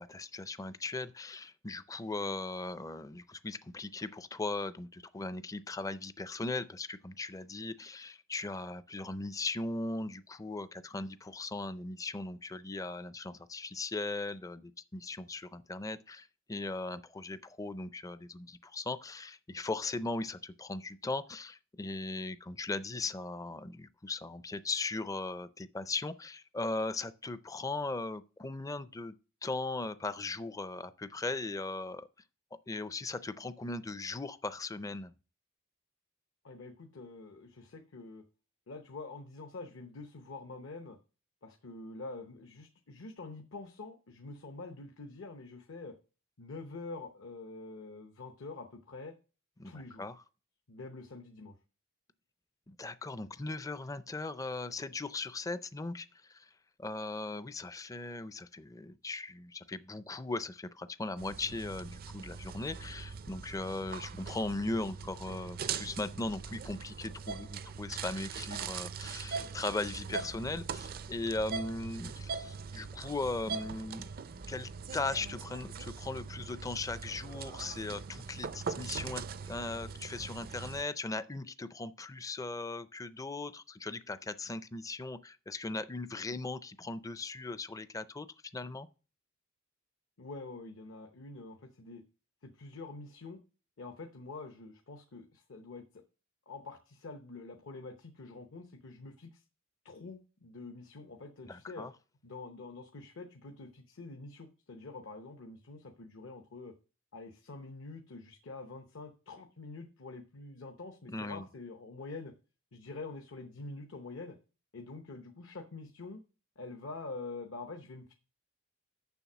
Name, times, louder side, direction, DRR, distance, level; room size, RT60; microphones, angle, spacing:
voice 1, 0.0-29.2 29.4-32.1 32.7-35.1 49.6-50.1 52.7-56.5 56.8-74.1 74.5-88.3 88.5-88.9 101.5-101.9 111.1-111.4, left 3 dB, 15° left, 0.4 m, -38 dB
voice 2, 36.4-38.2 38.7-41.0 41.4-45.9 46.4-49.1 49.6-50.0 50.7-51.6 90.2-92.0 92.4-93.4 93.8-96.0 96.5-99.4 99.8-101.9 102.2-106.7 107.1-112.3 112.7-114.4 114.7-116.2 116.6-118.1, left 3 dB, 65° left, 0.9 m, -46 dB
sound 1, 61.2-80.8, right 5 dB, 45° right, 0.4 m, -41 dB
7.1 x 6.1 x 6.0 m
head